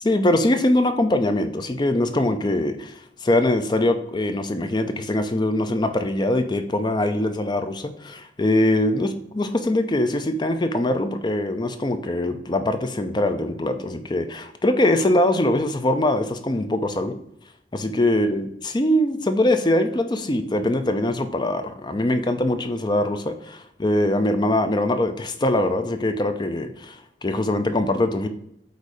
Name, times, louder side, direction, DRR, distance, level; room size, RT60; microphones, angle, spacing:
voice 1, 0.0-17.1 17.8-27.0 27.2-28.3, left 1 dB, 25° left, 8 dB, 0.5 m, -22 dB
8.0 x 2.7 x 4.9 m, 0.76 s
head